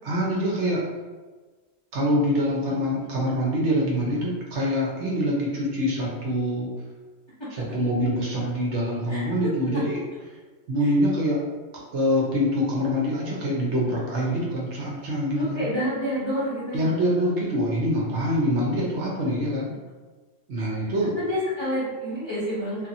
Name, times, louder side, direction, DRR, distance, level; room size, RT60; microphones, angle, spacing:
voice 1, 0.0-0.8 1.9-6.7 7.5-10.0 10.7-11.4 11.9-15.7 16.7-19.7 20.5-21.1, equal, 65° right, -4 dB, 1.0 m, -25 dB
voice 2, 15.4-16.9 20.6-20.7 21.2-22.9, equal, 30° left, -10 dB, 0.6 m, -28 dB
2.8 x 2.5 x 2.6 m, 1.3 s
omnidirectional pair, 1.3 m